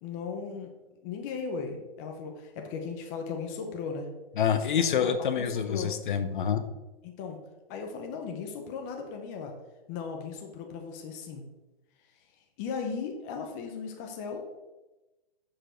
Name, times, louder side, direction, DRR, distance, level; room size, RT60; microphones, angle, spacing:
voice 1, 0.0-0.7 1.0-4.1 5.0-5.9 7.0-7.4 7.7-9.5 9.9-11.4 12.6-14.5, left 5 dB, 15° left, 3 dB, 0.7 m, -37 dB
voice 2, 4.4-6.6, left 7 dB, 55° left, 10 dB, 0.8 m, -27 dB
7.6 x 6.9 x 4.4 m, 1.1 s
hypercardioid pair, 160°, 30 cm